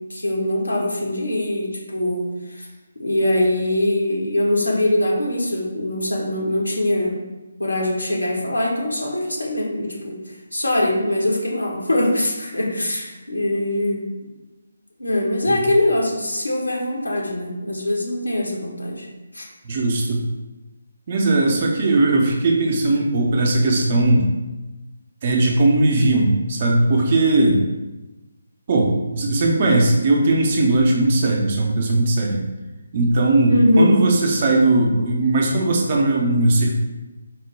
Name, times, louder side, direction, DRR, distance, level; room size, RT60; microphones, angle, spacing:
voice 1, 0.1-2.7 3.0-7.1 7.6-10.2 10.5-14.1 15.0-19.1 19.3-19.4 33.5-33.9, left 1 dB, 85° left, -2 dB, 1.0 m, -22 dB
voice 2, 19.6-20.2 21.1-24.3 25.2-27.6 28.7-32.5 32.9-36.7, right 2 dB, 40° right, 0 dB, 0.6 m, -18 dB
4.3 x 2.1 x 3.1 m, 1.1 s
figure-of-eight pair, 150°, 0 cm